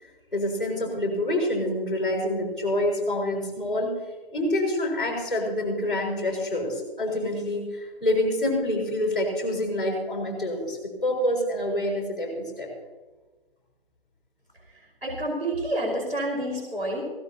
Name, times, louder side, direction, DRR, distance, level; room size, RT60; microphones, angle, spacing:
voice 1, 0.0-4.0 4.3-12.7, left 1 dB, ahead, -13 dB, 5.3 m, -27 dB
voice 2, 14.6-17.0, right 1 dB, 80° right, -2 dB, 5.1 m, -29 dB
19.5 x 17.0 x 2.9 m, 1.2 s
figure-of-eight pair, 160°, 30 cm